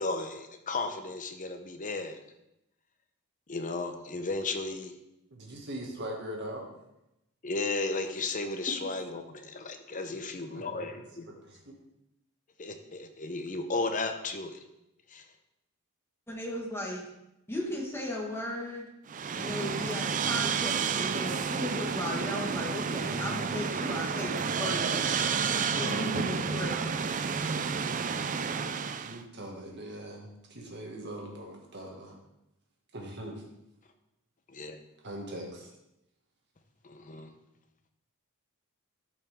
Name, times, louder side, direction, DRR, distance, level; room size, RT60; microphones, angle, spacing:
voice 1, 0.0-2.2 3.5-4.9 7.4-11.3 12.6-14.6 15.1-15.2 34.5-34.8 36.8-37.3, left 3 dB, 35° left, 6 dB, 0.8 m, -34 dB
voice 2, 5.3-6.7 10.1-11.7 25.7-27.2 28.9-32.2 32.9-33.3 35.0-35.7, right 1 dB, 50° right, 0 dB, 2.0 m, -42 dB
voice 3, 16.3-17.0 17.5-18.9 19.4-25.1 25.8-26.9, left 1 dB, 10° left, -1 dB, 1.7 m, -36 dB
sound 1, 19.1-29.2, right 6 dB, 35° right, 0.4 m, -30 dB
13.0 x 5.7 x 3.6 m, 0.88 s
head